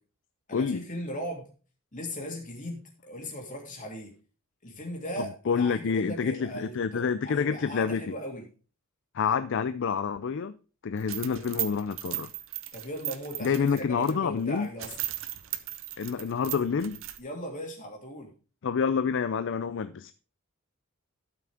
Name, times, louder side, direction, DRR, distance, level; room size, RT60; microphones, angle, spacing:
voice 1, 0.5-1.5 1.9-4.1 4.6-8.4 11.1-11.4 12.7-15.0 17.2-18.3, equal, 35° left, 2.8 m, -38 dB
voice 2, 5.2-8.0 9.1-10.5 10.8-12.3 13.4-14.7 16.0-17.0 18.6-20.1, left 6 dB, 60° left, 0.4 m, -28 dB
sound 1, 11.0-14.1 14.5-14.6 14.8-17.2, right 14 dB, 65° right, 0.8 m, -36 dB
12.5 x 6.0 x 3.5 m
head